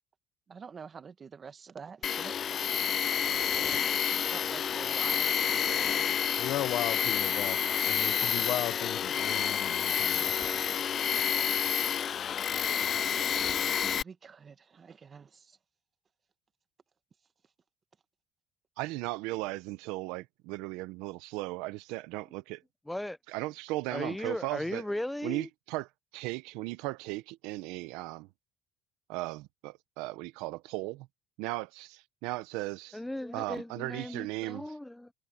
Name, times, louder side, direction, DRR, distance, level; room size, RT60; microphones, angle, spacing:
voice 1, 0.5-2.4 3.5-3.8 4.2-6.1 8.2-8.3 11.1-11.2 13.7-15.6, right 6 dB, 35° right, 1.4 m, -47 dB
Tools, 2.0-14.0, left 8 dB, 45° left, 0.3 m, -29 dB
voice 2, 6.4-10.3, left 15 dB, 70° left, 0.9 m, -36 dB
voice 3, 18.8-22.6 23.3-24.9 25.2-28.3 29.1-31.1 31.4-33.0 33.3-34.7, right 20 dB, 90° right, 0.9 m, -37 dB
voice 4, 22.9-23.2 23.9-25.5 32.9-35.1, left 1 dB, 5° left, 0.8 m, -37 dB
cardioid pair, 105°, 0 cm